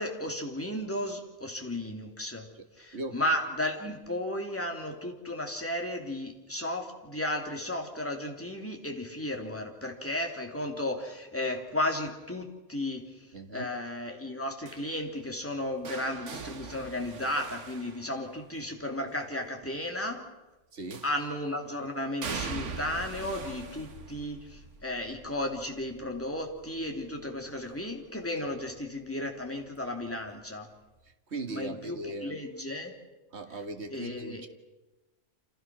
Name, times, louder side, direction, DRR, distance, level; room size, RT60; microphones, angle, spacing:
voice 1, 0.0-2.5 2.8-20.3 21.0-30.7 31.5-32.9 33.9-34.4, left 1 dB, 10° left, 3.1 m, -34 dB
voice 2, 2.9-3.2 13.3-13.7 20.7-21.1 31.0-32.5 33.3-34.5, right 2 dB, 65° right, 2.1 m, -39 dB
sound 1, 14.6-18.7 20.9-21.5 22.2-28.0 28.4-28.8 30.0-30.1, right 5 dB, 80° right, 1.7 m, -42 dB
29.5 x 27.5 x 6.2 m
omnidirectional pair, 1.2 m